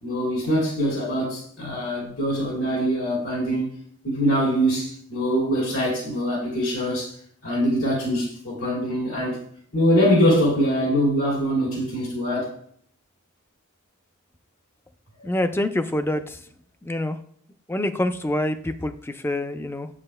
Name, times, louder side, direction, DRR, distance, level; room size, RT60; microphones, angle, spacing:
voice 1, 0.0-3.6 4.0-7.2 7.4-9.4 9.7-12.6 15.2-15.3, equal, 85° left, -5 dB, 2.8 m, -23 dB
voice 2, 15.2-16.4 16.8-17.2 17.7-19.9, left 1 dB, 10° left, 9 dB, 0.4 m, -26 dB
9.7 x 7.3 x 2.2 m, 0.62 s
head